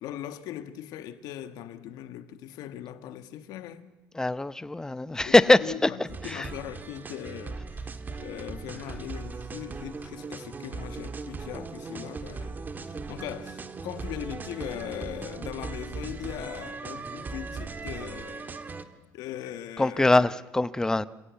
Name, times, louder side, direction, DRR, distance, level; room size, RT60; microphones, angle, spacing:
voice 1, 0.0-3.9 5.2-18.5 19.1-20.3, left 11 dB, 80° left, 1.5 m, -40 dB
voice 2, 4.2-5.9 6.3-6.4 19.8-21.1, left 2 dB, 10° left, 0.7 m, -22 dB
sound 1, 6.1-18.8, right 4 dB, 30° right, 1.7 m, -38 dB
28.0 x 17.0 x 8.3 m
cardioid pair, 120°, 7 cm